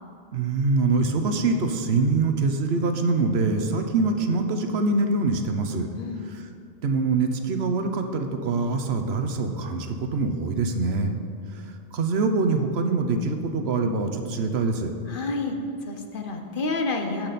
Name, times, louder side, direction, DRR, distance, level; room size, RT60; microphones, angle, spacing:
voice 1, 0.3-5.9 6.3-6.5 6.8-11.2 11.9-14.9, right 3 dB, 80° right, 6 dB, 1.1 m, -24 dB
voice 2, 15.1-15.6 15.8-17.3, left 3 dB, 55° left, 4 dB, 1.0 m, -29 dB
15.5 x 6.0 x 4.1 m, 2.5 s
omnidirectional pair, 1.1 m